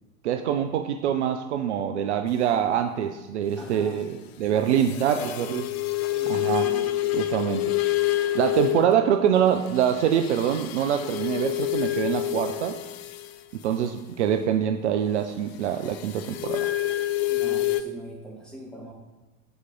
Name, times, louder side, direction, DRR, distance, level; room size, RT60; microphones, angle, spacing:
voice 1, 0.2-5.6 6.3-6.7 7.1-7.7 8.3-12.8 13.5-16.7, right 9 dB, 55° right, 7 dB, 0.5 m, -25 dB
voice 2, 3.6-4.0 4.5-5.5 6.1-7.2 17.3-18.9, right 1 dB, ahead, -3 dB, 1.4 m, -40 dB
sound 1, 4.8-9.0 9.7-13.4 15.9-17.8, left 15 dB, 50° left, 0.5 m, -27 dB
6.9 x 4.7 x 3.9 m, 1.1 s
figure-of-eight pair, 80°, 41 cm